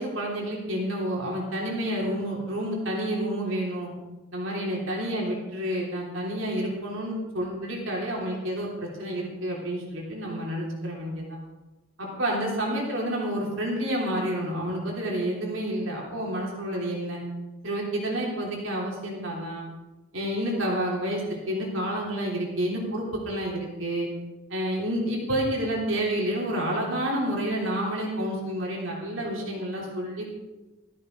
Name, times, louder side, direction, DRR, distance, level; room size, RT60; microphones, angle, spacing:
voice 1, 0.0-3.9 4.3-11.4 12.0-17.2 17.6-19.7 20.1-24.1 24.5-30.3, right 1 dB, 65° right, -2 dB, 3.4 m, -29 dB
15.0 x 14.0 x 3.9 m, 1.1 s
head